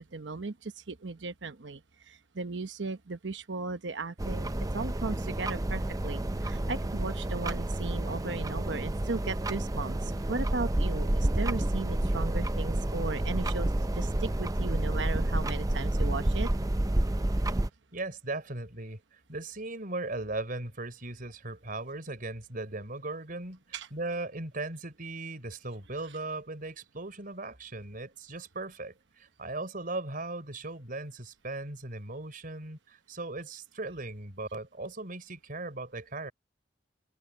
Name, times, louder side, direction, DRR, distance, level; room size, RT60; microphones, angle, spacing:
voice 1, 0.0-16.5 23.7-23.9, right 3 dB, 75° right, 1.0 m, -36 dB
sound 1, 4.2-17.7, right 1 dB, 20° right, 0.6 m, -29 dB
voice 2, 17.9-36.3, right 2 dB, 50° right, 4.4 m, -38 dB
head